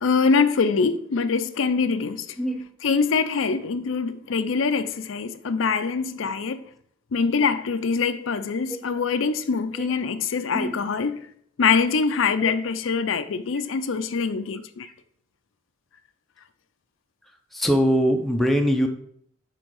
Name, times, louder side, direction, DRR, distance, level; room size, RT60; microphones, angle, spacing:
voice 1, 0.0-2.4 2.8-6.6 7.1-11.3 11.6-14.9, left 5 dB, 85° left, 0.5 m, -24 dB
voice 2, 17.5-18.9, equal, ahead, 0.6 m, -22 dB
6.1 x 4.5 x 4.7 m
head